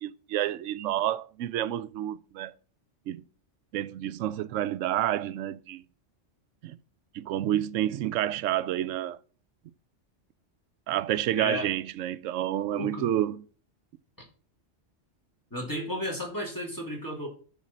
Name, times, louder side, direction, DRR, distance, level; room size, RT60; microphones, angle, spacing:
voice 1, 0.0-2.5 3.1-3.2 3.7-5.8 6.6-6.8 7.1-9.2 10.9-13.4, right 12 dB, 85° right, 0.9 m, -29 dB
voice 2, 11.4-11.7 12.7-13.1 15.5-17.3, equal, 15° left, 2.7 m, -33 dB
9.7 x 4.1 x 7.2 m
omnidirectional pair, 1.3 m